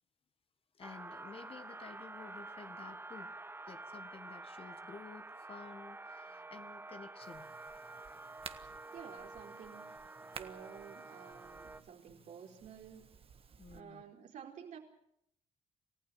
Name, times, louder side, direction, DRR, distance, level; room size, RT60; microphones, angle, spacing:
voice 1, 0.7-3.3 3.7-7.5 13.6-14.0, left 5 dB, 50° left, 10 dB, 1.8 m, -52 dB
sound 1, 0.8-11.8, right 2 dB, 20° right, 1.4 m, -49 dB
sound 2, 7.2-13.8, right 6 dB, 50° right, 1.6 m, -55 dB
voice 2, 8.9-13.1 13.7-14.8, right 8 dB, 80° right, 1 dB, 4.4 m, -52 dB
28.0 x 15.0 x 7.7 m, 0.74 s
cardioid pair, 80°, 13 cm